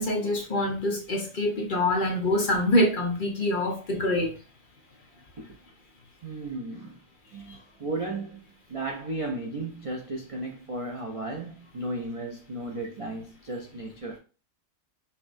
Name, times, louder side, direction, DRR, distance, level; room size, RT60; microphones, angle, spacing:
voice 1, 0.0-4.3, left 1 dB, 45° left, 0.8 m, -25 dB
voice 2, 6.2-7.0 7.3-14.2, right 2 dB, 50° right, 0.4 m, -35 dB
5.6 x 2.2 x 2.5 m
omnidirectional pair, 1.4 m